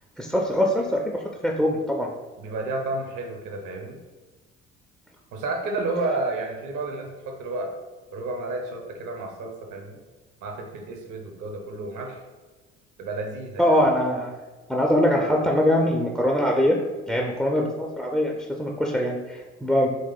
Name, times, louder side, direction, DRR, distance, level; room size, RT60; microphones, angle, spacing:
voice 1, 0.2-2.1 13.6-14.3 14.7-16.8 17.1-19.9, equal, ahead, 1 dB, 0.3 m, -22 dB
voice 2, 2.4-4.0 5.3-7.7 8.1-10.0 10.4-12.2 13.0-13.8, right 2 dB, 60° right, 3 dB, 0.7 m, -31 dB
3.0 x 2.8 x 3.8 m, 1.3 s
hypercardioid pair, 55°, 34 cm